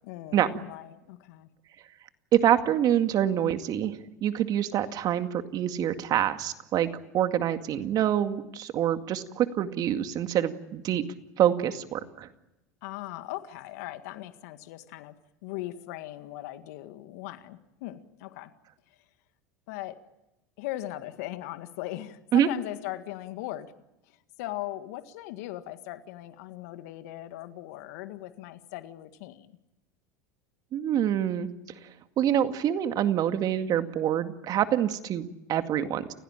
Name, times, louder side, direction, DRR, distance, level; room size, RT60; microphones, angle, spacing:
voice 1, 0.0-1.5 12.8-15.1 15.4-18.5 19.7-20.0 20.6-23.7 24.0-29.6, left 15 dB, 70° left, 10 dB, 1.9 m, -39 dB
voice 2, 2.3-6.9 7.1-11.0 11.4-12.3 22.3-22.5 30.7-31.5 32.2-36.1, right 10 dB, 45° right, 8 dB, 2.1 m, -26 dB
30.0 x 16.5 x 9.0 m, 0.94 s
hypercardioid pair, 90°, 9 cm